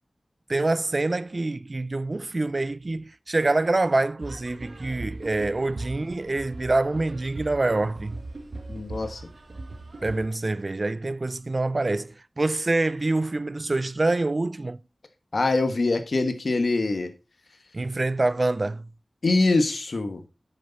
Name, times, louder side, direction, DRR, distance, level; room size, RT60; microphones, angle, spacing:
voice 1, 0.5-8.2 10.0-14.8 17.7-18.8, right 2 dB, 50° right, 0.4 m, -26 dB
sound 1, 4.2-10.2, right 2 dB, 70° right, 1.7 m, -39 dB
voice 2, 8.7-9.2 15.3-17.1 19.2-20.2, left 3 dB, 75° left, 1.3 m, -24 dB
9.1 x 6.6 x 4.0 m
wide cardioid pair, 65°, 0 cm